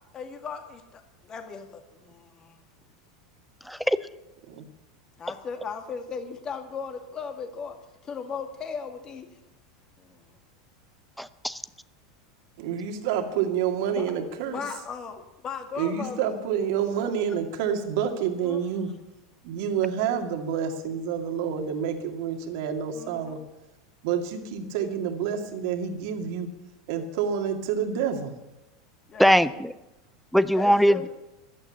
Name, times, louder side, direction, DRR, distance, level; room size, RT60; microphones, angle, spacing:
voice 1, 0.1-2.6 5.2-7.8 8.0-9.3 10.0-10.4 13.9-14.1 14.5-16.3 18.4-18.8 22.9-23.3 29.1-29.7 30.5-31.1, left 6 dB, 30° left, 6 dB, 2.1 m, -37 dB
voice 2, 3.7-4.0 11.2-11.6 29.2-29.7 30.3-31.1, equal, ahead, 16 dB, 0.7 m, -21 dB
voice 3, 12.6-14.6 15.8-18.9 19.4-23.4 24.0-26.5 26.9-28.3, right 8 dB, 55° right, 5 dB, 2.2 m, -28 dB
15.0 x 12.0 x 7.1 m, 0.99 s
figure-of-eight pair, 85°, 2 cm